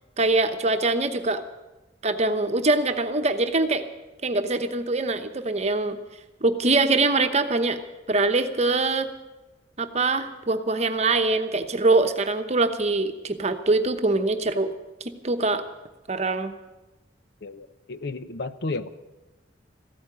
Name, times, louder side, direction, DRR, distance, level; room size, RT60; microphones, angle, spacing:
voice 1, 0.2-1.4 2.0-3.8 4.2-6.0 6.4-7.8 8.1-9.1 9.8-14.7 15.2-15.6 16.1-16.5, right 3 dB, 35° right, 8 dB, 1.0 m, -23 dB
voice 2, 17.4-18.9, left 3 dB, 60° left, 12 dB, 0.8 m, -33 dB
14.5 x 8.7 x 10.0 m, 1.1 s
head